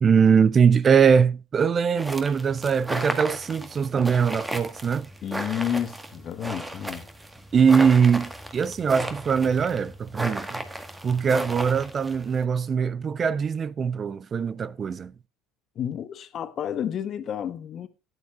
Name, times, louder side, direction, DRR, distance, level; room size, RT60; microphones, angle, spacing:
voice 1, 0.0-5.1 7.5-10.6 11.0-15.1, right 6 dB, 35° right, 0.5 m, -21 dB
sound 1, 2.0-12.4, right 1 dB, 10° right, 1.6 m, -35 dB
voice 2, 5.2-7.1 15.7-17.9, left 9 dB, 45° left, 1.2 m, -30 dB
16.0 x 9.6 x 2.5 m
hypercardioid pair, 70°, 0 cm